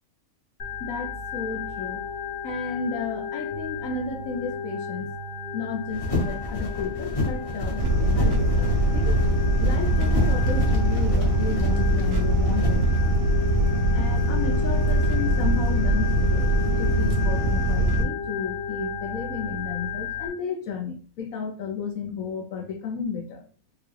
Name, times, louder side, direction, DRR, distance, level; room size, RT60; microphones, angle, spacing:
Organ, 0.6-20.3, left 4 dB, 45° left, 1.0 m, -33 dB
voice 1, 0.8-2.0 2.4-5.1 5.5-9.2 9.6-12.8 13.9-16.5 16.8-23.4, left 5 dB, 70° left, 1.0 m, -33 dB
sound 1, 5.9-12.8, left 1 dB, 30° left, 0.7 m, -30 dB
sound 2, 7.8-18.0, right 1 dB, 65° right, 0.8 m, -22 dB
3.7 x 2.2 x 3.1 m
omnidirectional pair, 1.6 m